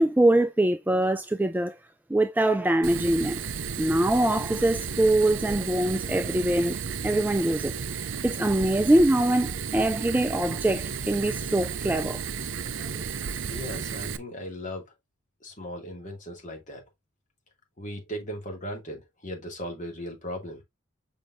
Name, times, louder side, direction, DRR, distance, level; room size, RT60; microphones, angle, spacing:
voice 1, 0.0-1.8 2.1-3.4 3.8-6.8 7.0-7.7 8.2-12.2 12.9-13.0, right 1 dB, 10° right, 0.3 m, -23 dB
Fire, 2.8-14.2, right 6 dB, 70° right, 0.6 m, -33 dB
voice 2, 13.4-14.8 15.4-16.8 17.8-20.6, equal, 40° left, 2.5 m, -37 dB
7.0 x 5.2 x 2.7 m
head